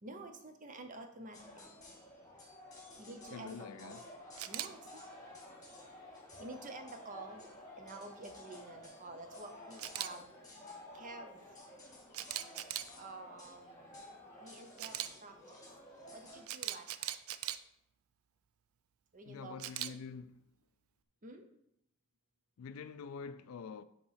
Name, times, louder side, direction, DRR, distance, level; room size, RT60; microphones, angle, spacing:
voice 1, 0.0-1.8 3.0-3.9 4.5-5.2 6.4-7.4 7.8-10.3 10.9-11.4 13.0-13.9 14.4-15.7 16.1-17.2 19.1-20.0 21.2-21.5, right 2 dB, 40° right, 0.7 m, -50 dB
sound 1, 1.3-16.5, left 1 dB, 20° left, 1.6 m, -53 dB
voice 2, 3.3-4.0 19.3-20.4 22.6-23.8, left 5 dB, 80° left, 0.4 m, -46 dB
Camera, 4.4-4.7 9.8-10.1 12.1-12.9 14.8-15.1 16.5-17.6 19.6-19.9, right 12 dB, 80° right, 0.4 m, -39 dB
6.7 x 3.0 x 5.6 m
head